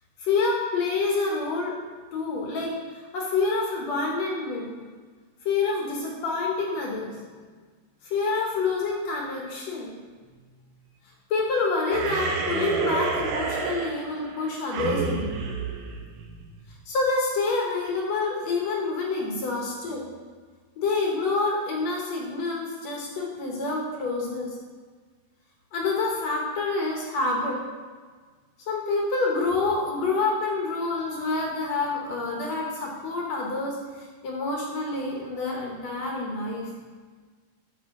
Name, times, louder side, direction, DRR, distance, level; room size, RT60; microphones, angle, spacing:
voice 1, 0.2-1.8 2.1-4.7 5.5-7.2 8.0-9.9 11.3-15.3 16.9-20.0 20.8-24.5 25.7-27.6 28.7-36.7, left 3 dB, 60° left, -1 dB, 2.0 m, -27 dB
sound 1, 11.9-16.6, right 5 dB, 85° right, 2.7 m, -30 dB
12.0 x 5.6 x 3.8 m, 1.5 s
omnidirectional pair, 4.2 m